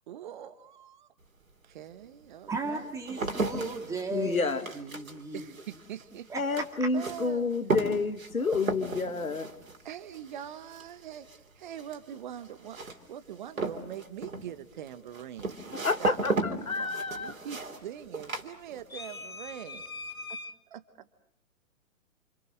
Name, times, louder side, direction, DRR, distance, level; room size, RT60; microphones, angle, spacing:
voice 1, 0.1-1.1 1.6-2.9 5.3-6.3 6.9-7.5 9.8-12.8 13.1-16.3 16.7-19.8 20.7-21.1, right 10 dB, 35° right, 12 dB, 1.2 m, -43 dB
sound 1, 1.2-1.3 2.0-19.2 19.5-20.0, right 3 dB, 70° right, 3.1 m, -36 dB
voice 2, 2.5-5.5 6.3-6.4, right 3 dB, 5° right, 4 dB, 2.3 m, -36 dB
voice 3, 4.1-4.6 6.3-9.5 15.7-17.3 18.9-20.5, left 4 dB, 75° left, 9 dB, 2.1 m, -30 dB
28.0 x 27.5 x 6.3 m, 0.74 s
figure-of-eight pair, 125°, 42 cm